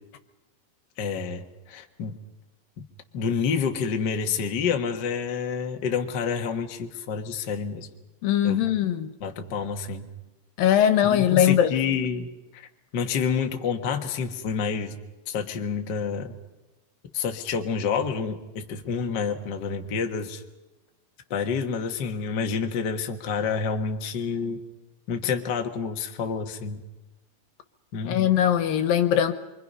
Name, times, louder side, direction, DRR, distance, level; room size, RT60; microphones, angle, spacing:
voice 1, 1.0-2.2 2.8-2.9 3.1-7.9 8.4-8.6 9.2-10.1 11.0-12.7 12.9-15.0 15.3-16.3 17.1-20.4 21.3-24.6 25.1-26.8 27.9-28.3, left 6 dB, 55° left, 1.2 m, -28 dB
voice 2, 8.2-9.1 10.6-11.7 28.0-29.3, left 10 dB, 80° left, 2.8 m, -21 dB
26.5 x 24.0 x 5.5 m
omnidirectional pair, 4.1 m